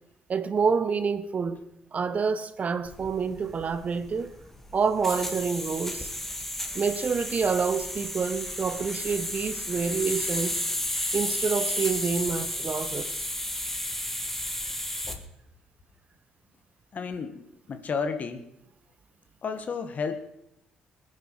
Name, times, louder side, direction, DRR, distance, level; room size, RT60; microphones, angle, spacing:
voice 1, 0.3-1.6 1.9-4.3 4.7-6.1 6.7-10.6 11.1-13.1, right 5 dB, 45° right, 1.1 m, -27 dB
sound 1, 2.9-15.2, left 1 dB, 10° left, 2.2 m, -33 dB
voice 2, 16.9-18.5 19.4-20.2, left 5 dB, 50° left, 1.8 m, -32 dB
21.0 x 9.9 x 4.9 m
hypercardioid pair, 50°, 3 cm